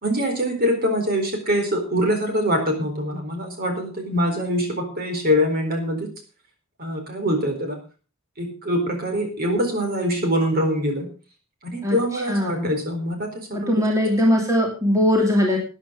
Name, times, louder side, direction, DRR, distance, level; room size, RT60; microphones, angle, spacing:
voice 1, 0.0-6.1 6.8-7.8 8.4-11.1 11.6-14.0, equal, 45° right, 4 dB, 4.2 m, -24 dB
voice 2, 11.8-12.7 13.5-15.6, left 1 dB, 15° right, 0 dB, 2.8 m, -20 dB
13.5 x 10.0 x 5.1 m, 0.35 s
head